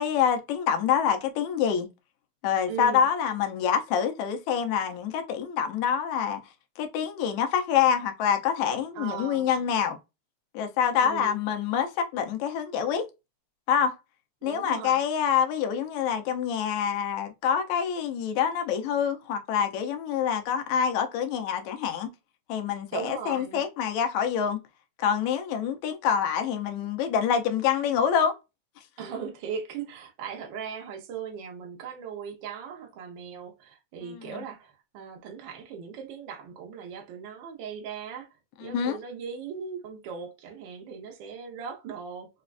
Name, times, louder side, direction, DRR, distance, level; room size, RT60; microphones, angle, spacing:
voice 1, 0.0-1.9 2.4-6.4 6.8-10.0 10.5-13.1 13.7-14.0 14.4-22.1 22.5-24.6 25.0-28.4 34.0-34.3 38.6-39.0, left 8 dB, 75° left, 2.0 m, -26 dB
voice 2, 2.7-3.0 8.9-9.5 11.0-11.4 14.4-15.0 22.9-23.6 29.0-38.3 38.6-42.3, right 7 dB, 90° right, 1.0 m, -38 dB
5.0 x 2.2 x 2.4 m
omnidirectional pair, 3.4 m